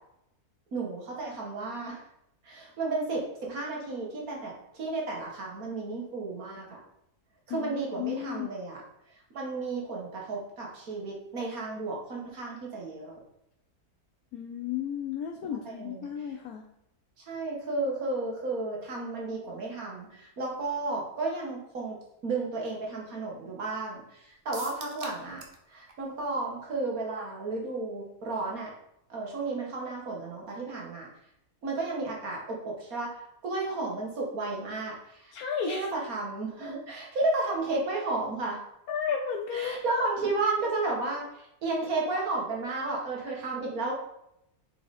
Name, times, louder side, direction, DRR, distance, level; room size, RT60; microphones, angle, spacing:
voice 1, 0.7-2.0 2.4-6.8 7.5-8.8 9.1-13.2 15.8-16.1 17.2-25.4 25.7-28.7 29.1-31.1 31.6-35.3 35.6-38.6 39.5-43.9, right 3 dB, 75° right, -2 dB, 2.1 m, -33 dB
voice 2, 7.5-8.5 14.3-16.6 35.3-35.9 38.9-40.1, left 7 dB, 90° left, 2 dB, 1.2 m, -33 dB
sound 1, 24.5-25.6 25.9-26.0 26.3-26.4, right 3 dB, 45° right, 1.0 m, -43 dB
6.9 x 4.8 x 4.2 m, 0.80 s
omnidirectional pair, 1.5 m